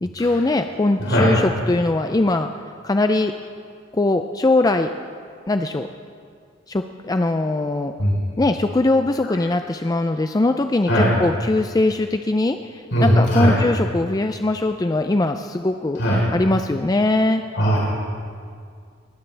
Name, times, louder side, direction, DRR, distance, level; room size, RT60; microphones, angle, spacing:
voice 1, 0.0-2.5 2.8-3.3 3.9-4.9 5.5-5.9 6.7-7.9 8.4-16.0 16.3-17.4, left 2 dB, 20° left, 7 dB, 0.4 m, -21 dB
voice 2, 12.9-13.5 16.0-16.2 17.5-17.8, equal, 80° left, -6 dB, 4.0 m, -18 dB
21.0 x 17.0 x 3.4 m, 2.2 s
head